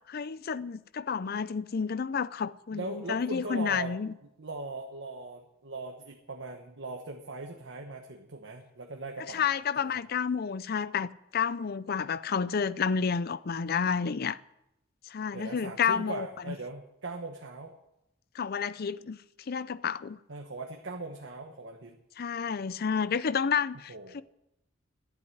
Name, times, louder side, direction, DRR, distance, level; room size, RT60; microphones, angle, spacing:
voice 1, 0.1-2.8 3.1-4.1 9.3-14.4 15.1-16.3 18.3-19.2 19.5-20.2 22.2-24.2, left 6 dB, 50° left, 0.5 m, -30 dB
voice 2, 2.7-3.9 4.2-9.5 9.8-10.0 15.3-17.8 20.3-22.0 23.7-24.2, right 2 dB, 65° right, 1.2 m, -40 dB
12.0 x 7.9 x 9.9 m
head